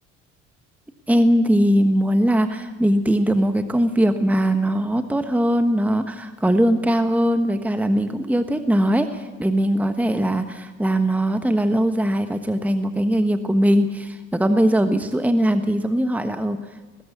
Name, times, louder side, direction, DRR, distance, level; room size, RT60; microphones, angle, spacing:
voice 1, 1.1-16.8, equal, 5° right, 9 dB, 1.3 m, -20 dB
20.0 x 16.0 x 8.4 m, 1.3 s
hypercardioid pair, 55°, 36 cm